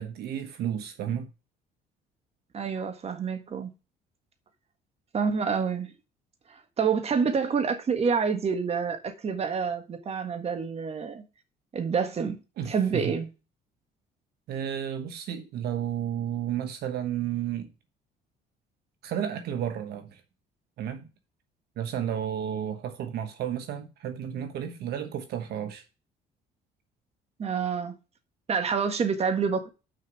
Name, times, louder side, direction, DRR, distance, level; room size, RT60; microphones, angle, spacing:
voice 1, 0.0-1.3 12.6-13.2 14.5-17.7 19.0-20.2 20.8-21.1 21.8-25.8, right 9 dB, 70° right, 1.2 m, -32 dB
voice 2, 2.5-3.7 5.1-5.9 6.5-11.2 11.7-12.4 12.7-13.3 27.4-27.9 28.5-29.7, right 6 dB, 40° right, 1.6 m, -27 dB
6.5 x 5.7 x 6.2 m
cardioid pair, 110°, 17 cm